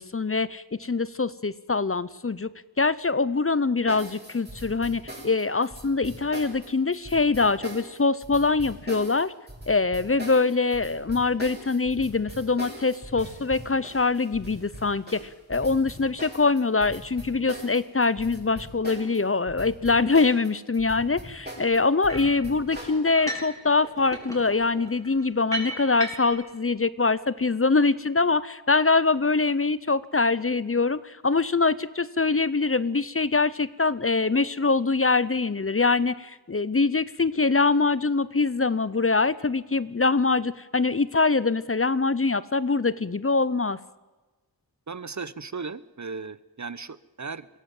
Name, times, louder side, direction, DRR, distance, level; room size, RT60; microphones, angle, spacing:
voice 1, 0.0-2.5 2.8-9.3 9.7-43.8, left 3 dB, 35° left, 17 dB, 0.7 m, -24 dB
sound 1, 3.9-19.2 19.5-23.0, equal, 25° right, 7.6 m, -41 dB
sound 2, 22.1-22.4 23.1-23.6 23.8-26.5, right 1 dB, 10° left, 4.9 m, -35 dB
voice 2, 44.9-47.5, right 4 dB, 45° right, 17 dB, 0.8 m, -36 dB
22.0 x 16.5 x 7.7 m, 1.2 s
wide cardioid pair, 65°, 39 cm